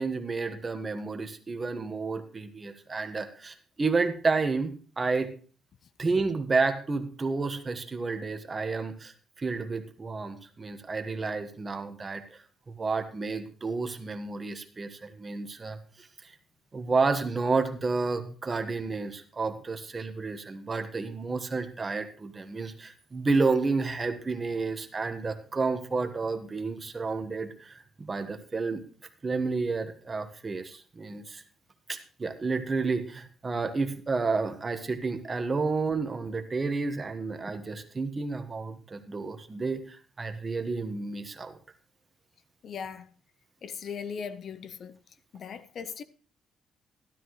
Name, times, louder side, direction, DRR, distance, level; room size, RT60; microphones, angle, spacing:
voice 1, 0.0-5.3 6.0-12.4 12.8-16.3 16.7-28.8 29.2-31.4 31.9-41.6, right 4 dB, 30° right, 1.4 m, -31 dB
voice 2, 42.6-43.1 43.6-45.0 45.3-46.0, left 6 dB, 60° left, 0.7 m, -38 dB
13.0 x 12.0 x 3.1 m
cardioid pair, 90°, 0 cm